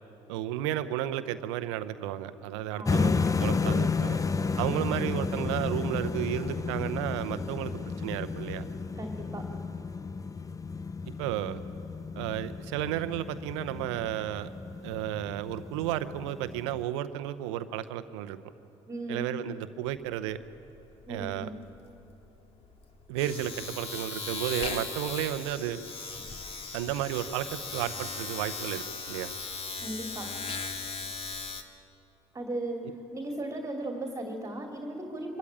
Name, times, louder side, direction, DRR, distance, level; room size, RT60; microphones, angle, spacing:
voice 1, 0.3-4.2 4.6-8.7 11.1-11.6 12.1-14.5 14.8-18.4 19.1-20.4 21.1-21.5 23.1-25.8 26.7-29.3, right 12 dB, 80° right, 12 dB, 0.8 m, -33 dB
voice 2, 2.8-3.1 9.0-9.4 18.9-19.2 21.1-21.5 29.8-30.3 32.3-32.8 33.1-35.4, right 1 dB, 20° right, 1 dB, 2.5 m, -36 dB
sound 1, 2.9-16.8, left 4 dB, 25° left, 0.7 m, -32 dB
Domestic sounds home sounds, 19.8-20.1 20.4-31.6, left 4 dB, 40° left, 2.0 m, -38 dB
24.0 x 13.0 x 8.7 m, 2.9 s
hypercardioid pair, 60°, 15 cm